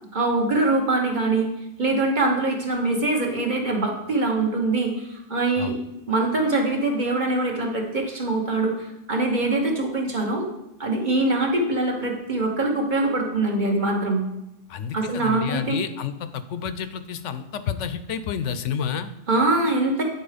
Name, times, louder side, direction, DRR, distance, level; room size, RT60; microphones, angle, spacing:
voice 1, 0.1-1.5 1.8-5.7 6.1-10.5 10.8-14.2 14.9-15.8 19.3-20.0, right 2 dB, 40° right, 1 dB, 1.3 m, -23 dB
voice 2, 14.7-19.1, left 7 dB, 80° left, 11 dB, 0.9 m, -30 dB
9.1 x 4.5 x 5.0 m, 0.86 s
omnidirectional pair, 1.2 m